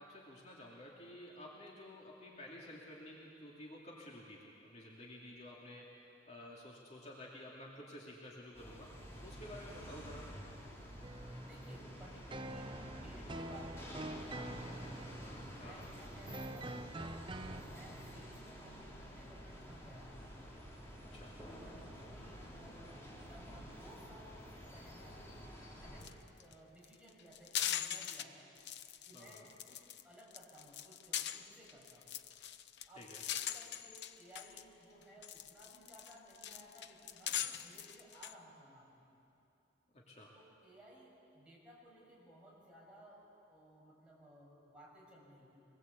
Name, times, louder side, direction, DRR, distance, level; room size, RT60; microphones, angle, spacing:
voice 1, 0.0-8.9 9.2-10.3 15.6-15.9 21.1-21.4 29.1-29.5 33.0-33.2 39.9-40.3, left 1 dB, 40° left, -3 dB, 2.6 m, -52 dB
sound 1, 8.5-26.0, equal, 15° left, 3.7 m, -50 dB
sound 2, 11.0-17.6, right 1 dB, 25° right, 0.7 m, -46 dB
voice 2, 11.4-15.0 15.6-17.2 17.6-20.2 21.6-25.3 25.7-28.5 29.0-32.2 32.9-39.2 40.3-45.6, right 1 dB, 5° right, -5 dB, 6.7 m, -58 dB
sound 3, 26.0-26.1 26.4-26.5 26.8-28.2 28.6-30.0 30.3-34.6 35.0-38.3, left 10 dB, 65° left, 0.8 m, -41 dB
24.5 x 20.5 x 8.3 m, 2.8 s
head